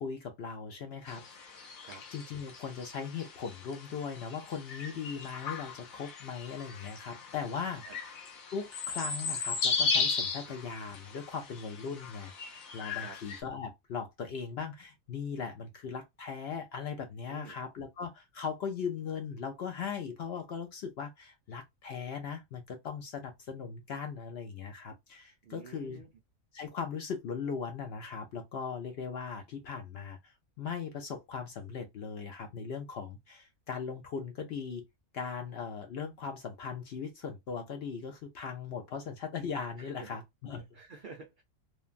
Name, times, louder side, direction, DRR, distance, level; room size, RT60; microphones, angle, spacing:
voice 1, 0.0-1.7 2.1-8.2 8.5-26.0 26.5-34.8 35.1-40.6, left 6 dB, 65° left, 0.7 m, -39 dB
sound 1, 1.1-13.4, left 4 dB, 90° left, 1.2 m, -36 dB
voice 2, 25.4-26.1 39.8-40.2 40.7-41.4, right 5 dB, 55° right, 0.6 m, -49 dB
3.1 x 2.1 x 2.4 m
omnidirectional pair, 1.4 m